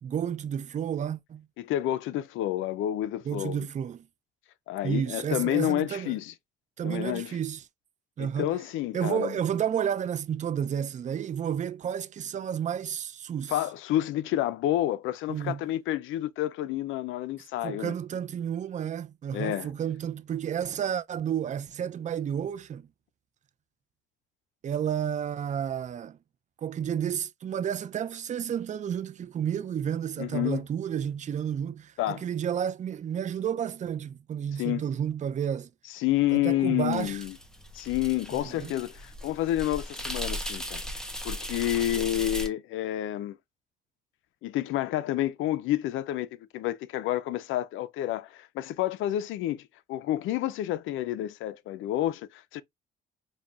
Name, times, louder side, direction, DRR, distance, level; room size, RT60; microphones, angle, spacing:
voice 1, 0.0-1.5 3.3-4.1 4.8-6.2 6.8-7.6 8.2-8.5 8.9-13.6 15.3-15.6 17.6-22.9 24.6-26.2 26.6-35.7 36.3-37.2 38.4-38.7, right 8 dB, 40° right, 0.4 m, -31 dB
voice 2, 1.6-3.7 4.7-6.3 6.8-7.4 8.2-9.3 13.5-17.9 19.3-19.7 30.2-30.6 32.0-32.2 34.6-34.8 35.9-37.3 37.7-40.8 41.2-43.4 44.4-46.3 46.5-49.6 49.9-52.6, left 13 dB, 80° left, 0.4 m, -29 dB
sound 1, 36.9-42.5, equal, 5° left, 0.8 m, -37 dB
5.2 x 2.6 x 2.3 m
cardioid pair, 90°, 20 cm